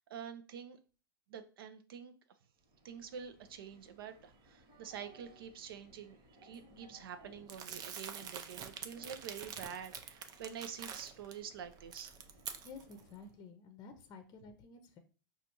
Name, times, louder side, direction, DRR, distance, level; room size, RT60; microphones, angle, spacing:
voice 1, 0.1-0.8 1.3-2.1 2.8-6.2 6.4-12.1, right 8 dB, 80° right, 9 dB, 0.6 m, -47 dB
sound 1, 2.6-13.4, right 1 dB, 55° right, 1.4 m, -62 dB
Crumpling crinkling, 7.5-11.3 11.7-13.0, right 7 dB, 35° right, 0.5 m, -46 dB
voice 2, 12.6-15.0, left 4 dB, 35° left, 7 dB, 0.6 m, -52 dB
5.1 x 2.4 x 2.9 m, 0.36 s
hypercardioid pair, 115°, 12 cm